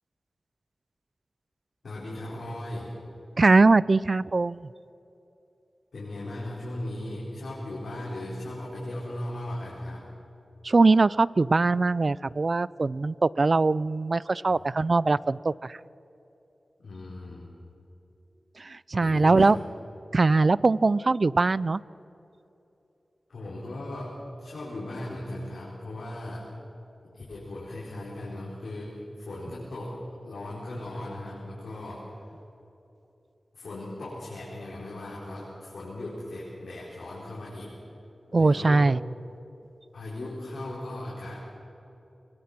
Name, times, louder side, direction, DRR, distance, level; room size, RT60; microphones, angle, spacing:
voice 1, 1.8-2.9 5.9-10.0 14.5-14.6 16.8-17.5 19.0-19.6 23.3-24.1 24.4-26.5 27.0-30.0 30.2-32.2 33.5-37.7 38.3-38.9 39.9-41.4, left 1 dB, 90° left, -7 dB, 4.9 m, -37 dB
voice 2, 3.4-4.7 10.6-15.8 18.6-19.6 20.1-21.8 38.3-39.0, right 3 dB, 50° right, 20 dB, 0.4 m, -22 dB
22.0 x 21.5 x 6.1 m, 2.9 s
wide cardioid pair, 70°, 0 cm